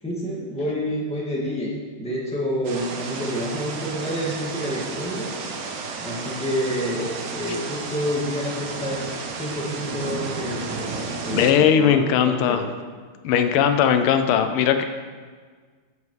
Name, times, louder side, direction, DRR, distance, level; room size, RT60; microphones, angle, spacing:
voice 1, 0.0-1.7 2.0-5.3 6.0-9.1 9.3-12.6, equal, 5° left, -5 dB, 1.6 m, -28 dB
sound 1, 2.6-11.5, right 4 dB, 60° right, 0.9 m, -32 dB
voice 2, 11.3-12.6 13.2-14.8, left 8 dB, 85° left, 8 dB, 1.5 m, -19 dB
10.5 x 7.3 x 3.2 m, 1.5 s
omnidirectional pair, 2.4 m